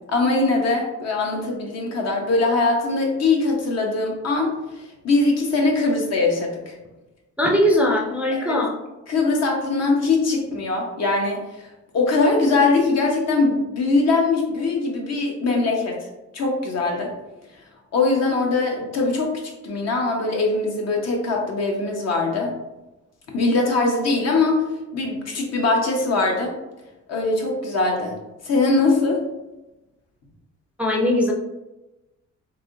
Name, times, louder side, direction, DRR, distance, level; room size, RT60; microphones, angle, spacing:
voice 1, 0.1-6.7 8.3-8.6 9.1-11.4 11.9-16.0 16.3-17.1 17.9-22.6 23.3-26.5 27.1-28.2 28.4-29.2, left 3 dB, 60° left, 0 dB, 0.9 m, -21 dB
voice 2, 7.4-8.7 30.8-31.3, left 1 dB, 5° right, -2 dB, 0.4 m, -20 dB
3.3 x 2.6 x 2.6 m, 1.0 s
cardioid pair, 90°, 30 cm